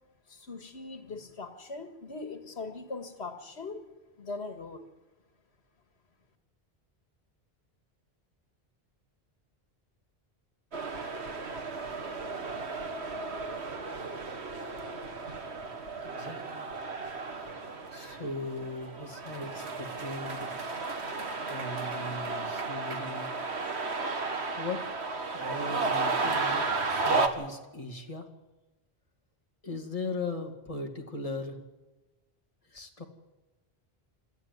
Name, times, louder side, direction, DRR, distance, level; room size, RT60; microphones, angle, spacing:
voice 1, 0.3-3.8 4.2-4.9, left 3 dB, 85° left, 8 dB, 2.1 m, -40 dB
sound 1, 10.7-27.3, right 3 dB, 85° right, 1.9 m, -33 dB
voice 2, 16.0-16.7 17.9-20.5 21.5-23.3 24.5-24.9 25.3-28.3 29.6-31.6 32.7-33.0, left 3 dB, 35° left, 3 dB, 2.4 m, -38 dB
27.0 x 13.0 x 9.5 m, 1.1 s
omnidirectional pair, 1.1 m